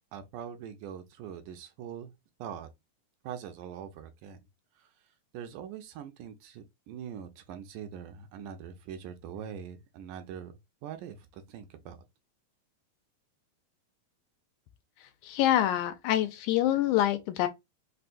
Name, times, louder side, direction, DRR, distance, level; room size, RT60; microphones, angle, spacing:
voice 1, 0.1-2.1 2.4-2.7 3.2-4.4 4.8-4.9 5.3-12.0, right 8 dB, 80° right, 2.0 m, -43 dB
voice 2, 15.2-17.5, left 12 dB, 80° left, 2.0 m, -26 dB
5.4 x 2.2 x 2.5 m
omnidirectional pair, 3.8 m